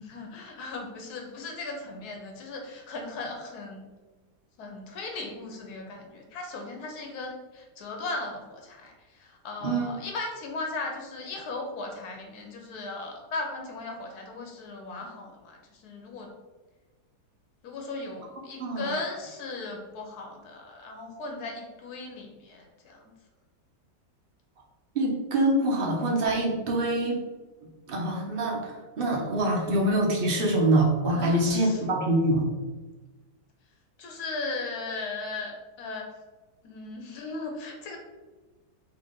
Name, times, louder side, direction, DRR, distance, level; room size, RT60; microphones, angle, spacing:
voice 1, 0.0-3.8 4.6-16.3 17.6-23.1 31.1-31.8 34.0-35.5 35.8-36.1 36.6-38.0, left 3 dB, 70° left, 2 dB, 1.2 m, -37 dB
voice 2, 9.6-10.0 18.6-18.9 24.9-27.2 27.9-32.5, right 1 dB, 55° right, -1 dB, 0.6 m, -25 dB
3.9 x 2.9 x 3.6 m, 1.2 s
omnidirectional pair, 1.8 m